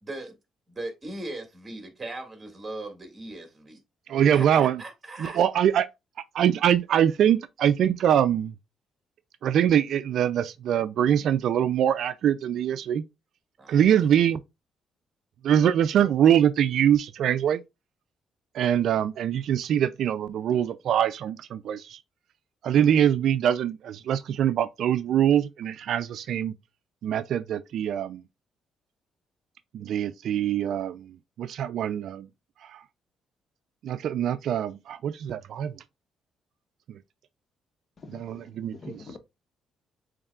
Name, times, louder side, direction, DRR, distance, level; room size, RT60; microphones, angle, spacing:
voice 1, 0.0-0.4 0.8-3.8 4.3-5.4 13.6-13.9, right 2 dB, 25° right, 1.9 m, -38 dB
voice 2, 4.1-4.8 5.2-5.9 6.3-8.5 9.4-13.0 13.7-14.4 15.4-17.6 18.5-22.0 22.6-26.5 27.0-28.2 29.7-31.0 31.4-32.3 32.7-32.8 33.8-35.7 38.1-39.0, right 9 dB, 75° right, 0.3 m, -23 dB
voice 3, 38.0-38.4 38.7-39.2, left 4 dB, 45° left, 0.8 m, -44 dB
7.0 x 3.2 x 2.3 m
cardioid pair, 90°, 0 cm